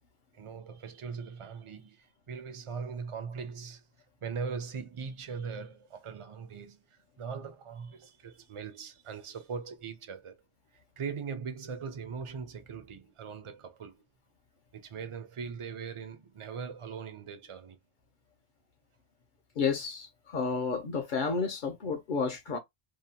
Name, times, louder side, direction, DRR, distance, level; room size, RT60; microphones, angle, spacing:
voice 1, 0.3-3.8 4.2-10.4 11.0-14.0 14.7-17.8, right 5 dB, 50° right, 0.3 m, -40 dB
voice 2, 19.6-22.6, left 5 dB, 60° left, 0.5 m, -31 dB
2.7 x 2.1 x 2.7 m
omnidirectional pair, 1.2 m